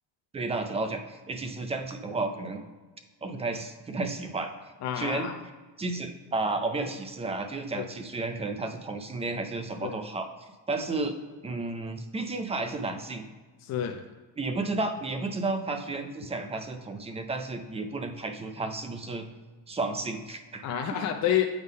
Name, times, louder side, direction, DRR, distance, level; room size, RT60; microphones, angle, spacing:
voice 1, 0.3-2.6 3.2-4.5 5.0-5.3 5.8-10.3 10.7-11.2 11.4-13.2 14.4-19.3 19.7-20.6, right 3 dB, 15° right, 6 dB, 0.4 m, -32 dB
voice 2, 4.8-5.4 7.7-7.9 9.8-10.0 13.6-14.0 20.6-21.4, left 10 dB, 40° left, 4 dB, 0.5 m, -28 dB
8.0 x 3.6 x 5.3 m, 1.3 s
cardioid pair, 160°, 41 cm